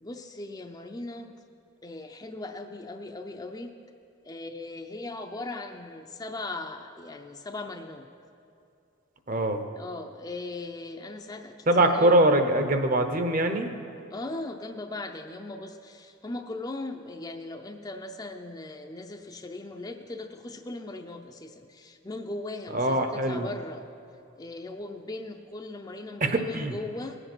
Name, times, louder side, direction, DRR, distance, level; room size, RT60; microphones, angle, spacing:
voice 1, 0.0-1.4 1.8-3.7 4.2-8.1 9.8-12.1 14.1-23.9 24.4-27.2, left 2 dB, 20° left, 5 dB, 0.5 m, -38 dB
voice 2, 9.3-9.6 11.7-13.7 22.7-23.5 26.2-26.8, right 1 dB, 45° right, 7 dB, 0.9 m, -23 dB
18.5 x 7.9 x 6.1 m, 2.6 s
head